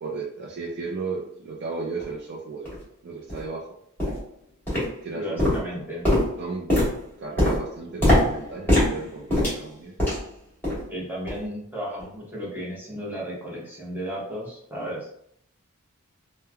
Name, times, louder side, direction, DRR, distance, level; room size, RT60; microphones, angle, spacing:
voice 1, 0.0-2.7 3.0-3.7 5.0-5.7 6.4-6.7 7.2-9.9, right 4 dB, 50° right, -1 dB, 0.4 m, -34 dB
sound 1, 2.0-2.1 2.7-2.8 3.3-3.5 4.0-4.3 4.7-5.1 5.4-10.3 10.6-10.9 11.3-11.5 12.0-12.1, left 1 dB, 10° left, 1.3 m, -23 dB
voice 2, 5.1-6.0 10.9-15.1, equal, 10° right, -6 dB, 0.8 m, -34 dB
3.1 x 2.1 x 2.3 m, 0.69 s
head